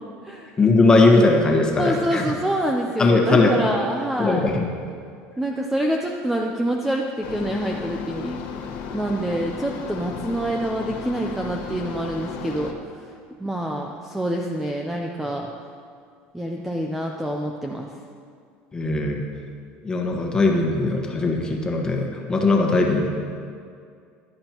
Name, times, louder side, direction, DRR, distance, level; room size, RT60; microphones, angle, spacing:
voice 1, 0.6-2.3 3.0-3.7 4.2-4.7 18.7-19.2 19.8-23.1, left 3 dB, 15° left, 1 dB, 1.4 m, -19 dB
voice 2, 1.8-4.5 5.4-8.4 8.9-12.7 13.4-15.5 16.3-17.9, right 1 dB, 5° right, 1 dB, 0.6 m, -26 dB
sound 1, 7.2-12.7, left 6 dB, 75° left, 1.4 m, -34 dB
16.0 x 10.5 x 3.0 m, 2.3 s
cardioid pair, 150°, 5 cm